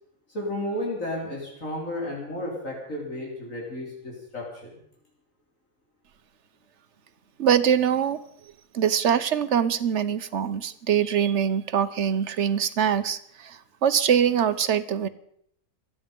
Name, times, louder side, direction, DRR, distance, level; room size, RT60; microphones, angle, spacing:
voice 1, 0.3-4.8, left 1 dB, 75° left, -2 dB, 4.4 m, -33 dB
voice 2, 7.4-8.2 8.7-15.1, right 8 dB, 60° right, 12 dB, 1.2 m, -23 dB
26.5 x 9.6 x 5.3 m, 0.67 s
omnidirectional pair, 1.4 m